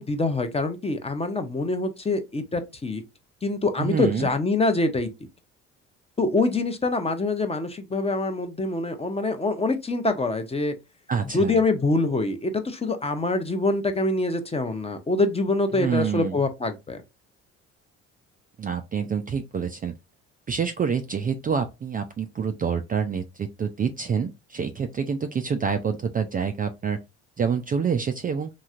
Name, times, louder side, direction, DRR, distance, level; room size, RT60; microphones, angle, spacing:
voice 1, 0.0-3.0 3.4-5.1 6.2-10.7 11.3-17.0, left 2 dB, 15° left, 0.7 m, -25 dB
voice 2, 3.8-4.3 11.1-11.6 15.7-16.4 18.6-19.9 20.5-27.0 27.4-28.5, right 6 dB, 25° right, 0.4 m, -27 dB
3.0 x 2.6 x 2.4 m
hypercardioid pair, 65°, 34 cm